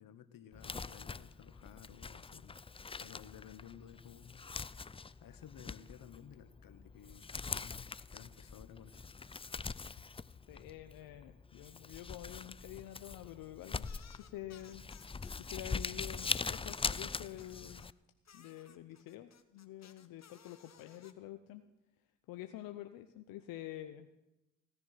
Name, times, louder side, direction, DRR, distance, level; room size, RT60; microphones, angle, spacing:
voice 1, 0.0-2.6 3.0-9.1, left 9 dB, 75° left, 13 dB, 1.0 m, -55 dB
Crumpling crinkling, 0.5-17.9, left 4 dB, 15° left, 0.4 m, -43 dB
voice 2, 10.5-13.9 14.2-14.8 15.4-17.9 18.3-21.6 22.3-24.1, left 13 dB, 90° left, 8 dB, 0.7 m, -48 dB
sound 1, 13.8-15.6 16.0-17.9 18.2-21.1, left 7 dB, 50° left, 1.3 m, -61 dB
17.0 x 10.5 x 5.7 m, 0.96 s
supercardioid pair, 50°, 34 cm